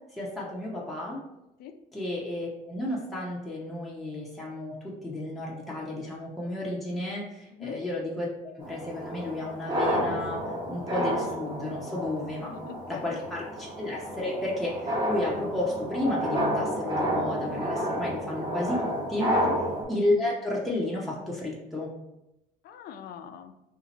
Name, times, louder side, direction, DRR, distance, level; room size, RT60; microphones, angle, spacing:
voice 1, 0.1-1.2 1.9-10.4 10.7-12.5 12.9-19.3 19.9-21.9, left 1 dB, ahead, -5 dB, 0.7 m, -32 dB
voice 2, 7.5-7.8 12.4-13.2 19.4-19.6 22.6-23.5, left 8 dB, 65° left, 8 dB, 0.4 m, -42 dB
sound 1, 8.6-19.8, equal, 25° right, 1.2 m, -30 dB
2.7 x 2.5 x 4.0 m, 0.90 s
cardioid pair, 110°, 17 cm